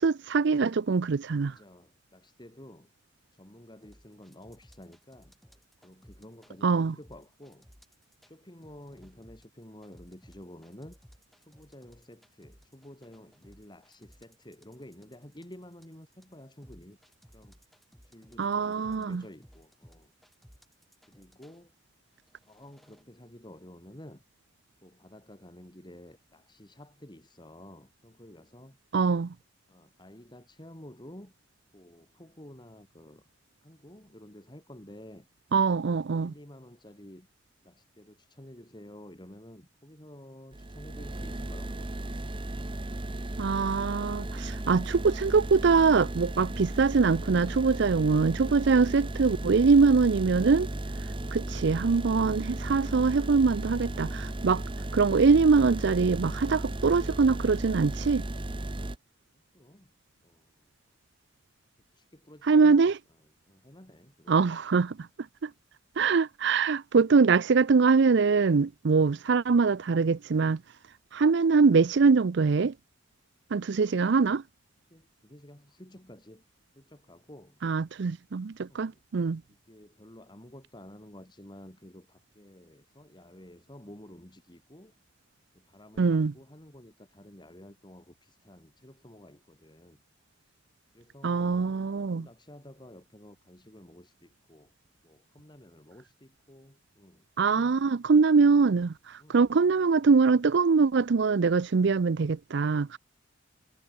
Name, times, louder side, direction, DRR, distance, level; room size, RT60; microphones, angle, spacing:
voice 1, 0.0-1.5 6.6-6.9 18.4-19.2 28.9-29.3 35.5-36.3 43.4-50.7 51.3-54.6 54.9-58.2 62.5-62.9 64.3-65.0 65.4-65.5 66.0-70.6 71.1-72.7 73.5-74.4 77.6-79.4 86.0-86.3 91.2-92.3 97.4-98.9 99.3-103.0, right 4 dB, 60° right, 0.5 m, -23 dB
voice 2, 1.4-2.9 3.3-5.3 5.8-7.7 8.2-11.0 11.4-17.0 17.3-17.6 18.0-20.1 21.1-21.7 22.4-24.2 24.8-28.8 29.7-31.3 31.7-33.2 33.6-35.3 35.8-37.3 37.6-41.9 44.4-44.9 59.5-59.9 60.2-60.8 61.9-62.9 63.2-64.6 65.4-65.6 74.9-76.4 76.7-77.6 78.7-79.0 79.5-84.9 85.5-90.0 90.4-90.5 90.9-94.7 95.0-97.9 99.2-99.5, left 1 dB, 25° left, 3.3 m, -51 dB
sound 1, 3.8-6.5 7.0-8.3 8.6-21.6 22.2-23.0, equal, ahead, 4.2 m, -58 dB
sound 2, 40.5-59.0, right 1 dB, 25° right, 0.9 m, -35 dB
head